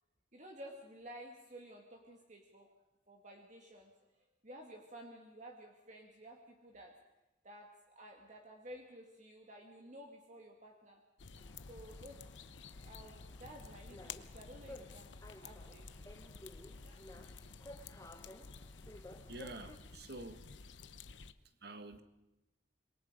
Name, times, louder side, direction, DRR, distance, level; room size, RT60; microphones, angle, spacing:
voice 1, 0.3-2.7 3.1-4.1 4.4-6.9 7.4-7.7 8.0-11.0 11.7-12.3 12.8-15.2 15.4-15.9 16.8-17.0, right 1 dB, 40° right, 1 dB, 2.2 m, -53 dB
sound 1, 11.2-21.3, left 4 dB, 90° left, 0.9 m, -52 dB
sound 2, 11.4-19.8, left 1 dB, 20° left, 1.2 m, -56 dB
voice 2, 19.3-20.4 21.6-22.0, right 2 dB, 60° right, 9 dB, 1.6 m, -48 dB
26.5 x 22.0 x 5.1 m, 0.97 s
head